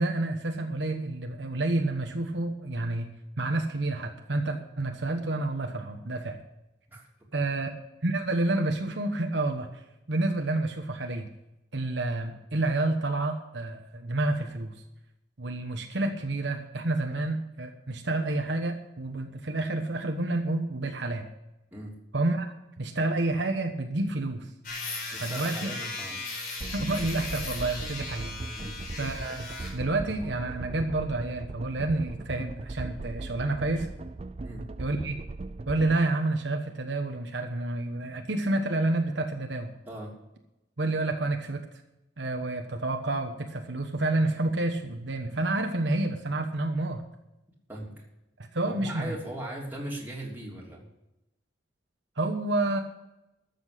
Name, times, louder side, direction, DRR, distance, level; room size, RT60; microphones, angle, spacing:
voice 1, 0.0-6.4 7.3-7.7 8.0-9.8 10.1-11.3 11.7-14.7 15.4-21.3 22.1-22.5 22.8-24.5 25.2-25.7 26.7-28.3 29.0-29.4 29.7-33.9 34.8-35.3 35.7-39.7 40.8-41.6 42.2-47.0 48.4-49.2 52.2-52.8, right 2 dB, 70° right, 4 dB, 1.2 m, -29 dB
sound 1, 24.6-29.8, left 3 dB, 50° left, 4.2 m, -37 dB
voice 2, 25.1-26.2 28.5-28.7 34.4-34.6 39.8-40.1 47.7-47.9 48.7-50.9, right 1 dB, 10° right, -3 dB, 3.2 m, -39 dB
sound 2, 26.6-36.0, right 2 dB, 35° right, 0.5 m, -39 dB
13.5 x 7.1 x 8.3 m, 0.91 s
head